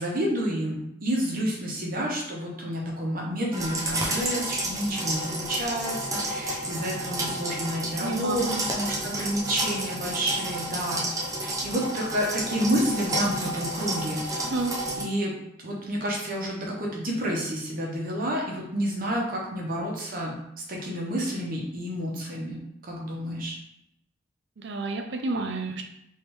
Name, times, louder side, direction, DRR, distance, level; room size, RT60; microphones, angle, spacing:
voice 1, 0.0-8.4 8.7-14.4 15.0-15.3 15.6-23.6, equal, 50° right, -2 dB, 0.9 m, -30 dB
sound 1, 3.5-15.0, right 1 dB, 20° right, 0.6 m, -31 dB
voice 2, 7.9-8.6 14.4-14.7 24.6-25.8, right 3 dB, 65° right, 4 dB, 0.5 m, -30 dB
3.4 x 3.1 x 3.1 m, 0.80 s
head